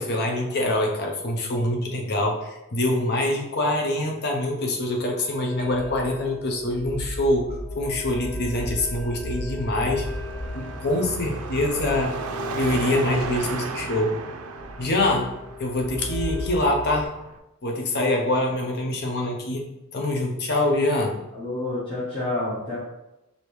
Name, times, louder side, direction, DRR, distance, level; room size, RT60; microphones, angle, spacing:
voice 1, 0.0-10.0 10.5-12.2 12.5-14.2 14.8-17.1 17.6-19.6 19.9-21.1, left 1 dB, 50° left, 1 dB, 0.7 m, -25 dB
sound 1, 5.1-17.1, left 1 dB, 5° left, 0.3 m, -36 dB
Car passing by / Traffic noise roadway noise / Engine, 10.1-17.4, right 5 dB, 85° right, 0.4 m, -35 dB
voice 2, 21.3-22.8, left 2 dB, 25° left, -9 dB, 1.1 m, -29 dB
5.0 x 2.7 x 3.1 m, 0.92 s
head